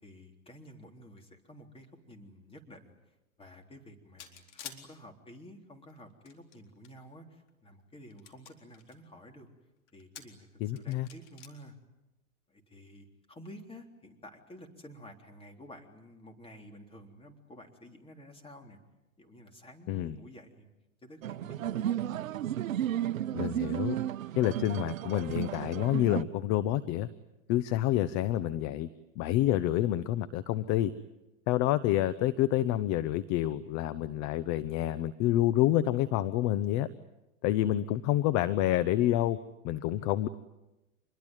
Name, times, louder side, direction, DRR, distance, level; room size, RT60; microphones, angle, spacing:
voice 1, 0.0-2.9 3.4-9.5 9.9-11.8 12.5-18.8 19.2-20.7 21.0-22.0, equal, 15° left, 4 dB, 3.7 m, -51 dB
sound 1, 4.2-4.8 5.9-6.9 7.5-7.6 8.1-8.9 9.9-10.4 10.8-11.5, left 8 dB, 60° left, 4.1 m, -47 dB
voice 2, 10.6-11.1 19.9-20.2 23.3-24.0 24.3-27.1 27.5-28.9 29.2-30.9 31.5-36.9 37.4-39.4 39.6-40.3, left 13 dB, 40° left, 15 dB, 1.0 m, -28 dB
sound 2, 21.2-26.2, right 11 dB, 80° right, 0.9 m, -33 dB
26.5 x 21.5 x 9.2 m, 1.0 s
hypercardioid pair, 120°, 40 cm